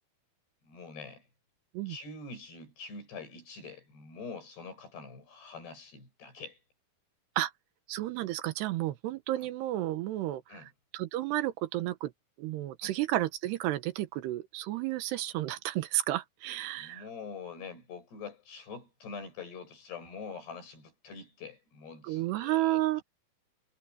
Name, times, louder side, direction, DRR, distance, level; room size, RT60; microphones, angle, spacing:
voice 1, 0.6-1.3 1.9-6.6 9.4-9.5 10.5-10.7 12.8-12.9 16.8-23.0, left 5 dB, 85° left, 9.7 m, -45 dB
voice 2, 7.9-10.4 10.9-12.1 12.4-17.0 22.1-23.0, right 15 dB, 85° right, 3.2 m, -32 dB
omnidirectional pair, 4.6 m